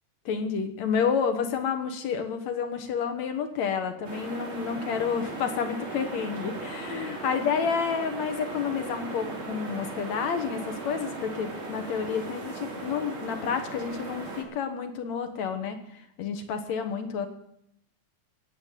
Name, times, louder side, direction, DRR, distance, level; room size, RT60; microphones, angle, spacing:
voice 1, 0.3-17.3, left 6 dB, 70° left, 7 dB, 2.6 m, -30 dB
sound 1, 4.0-14.4, right 3 dB, 40° right, 3.8 m, -37 dB
18.0 x 7.6 x 9.2 m, 0.73 s
omnidirectional pair, 3.4 m